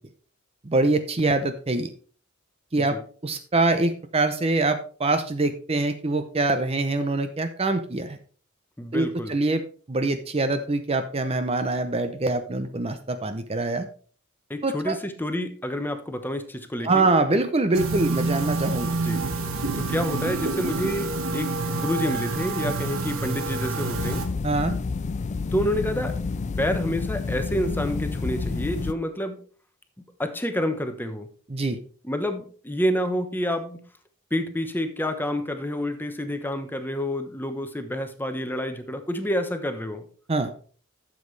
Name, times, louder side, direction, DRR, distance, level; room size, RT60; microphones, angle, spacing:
voice 1, 0.6-1.9 2.7-2.9 3.2-8.2 8.9-9.6 9.9-13.9 14.6-15.0 16.8-18.9 24.4-24.8 31.5-31.8 40.3-40.5, right 2 dB, 30° right, 9 dB, 0.6 m, -24 dB
voice 2, 8.8-9.4 14.5-17.1 18.9-19.2 19.8-24.2 25.5-26.2 26.6-29.4 30.2-31.3 32.0-33.8 34.3-40.0, equal, 10° left, 7 dB, 1.0 m, -28 dB
sound 1, 17.7-24.3, right 3 dB, 80° right, 1.5 m, -28 dB
sound 2, 23.9-28.9, left 4 dB, 35° left, 0.4 m, -29 dB
12.0 x 7.4 x 3.3 m, 0.42 s
head